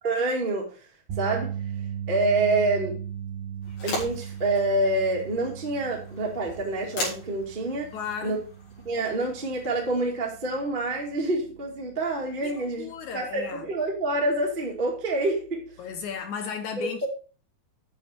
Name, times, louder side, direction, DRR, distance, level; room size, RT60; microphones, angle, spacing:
voice 1, 0.0-0.7 1.2-1.6 2.1-3.0 3.8-7.9 8.2-8.4 8.8-15.6 16.8-17.1, right 2 dB, 20° right, 1.7 m, -27 dB
sound 1, 1.1-13.4 13.7-14.0 16.1-16.2, right 9 dB, 75° right, 4.2 m, -38 dB
sound 2, 3.6-10.0, left 1 dB, 50° left, 5.5 m, -39 dB
voice 2, 7.9-8.4 12.4-13.6 15.8-17.1, left 7 dB, 70° left, 2.0 m, -35 dB
9.7 x 6.6 x 4.4 m
omnidirectional pair, 4.3 m